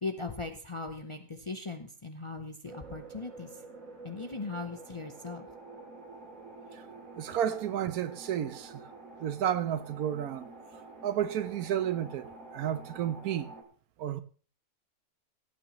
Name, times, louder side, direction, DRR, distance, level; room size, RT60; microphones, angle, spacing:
voice 1, 0.0-3.6 4.0-5.5, left 3 dB, 30° left, 0.6 m, -39 dB
sound 1, 2.6-13.6, right 3 dB, 65° right, 2.5 m, -48 dB
voice 2, 7.2-8.8 9.2-10.5 11.0-13.5 14.0-14.2, right 10 dB, 85° right, 1.2 m, -32 dB
16.5 x 8.8 x 3.1 m
omnidirectional pair, 1.5 m